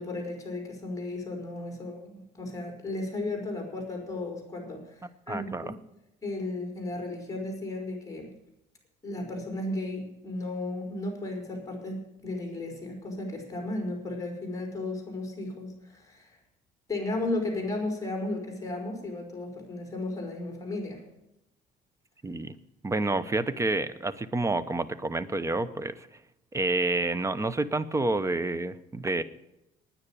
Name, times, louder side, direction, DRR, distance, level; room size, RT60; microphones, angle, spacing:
voice 1, 0.0-5.7 6.2-8.3 9.0-16.4 16.9-21.0, left 2 dB, 20° left, 2 dB, 4.7 m, -34 dB
voice 2, 5.3-5.7 22.2-22.5 22.8-25.9 26.5-29.2, right 2 dB, 15° right, 15 dB, 0.8 m, -29 dB
9.7 x 9.7 x 8.7 m, 0.89 s
cardioid pair, 110°, 17 cm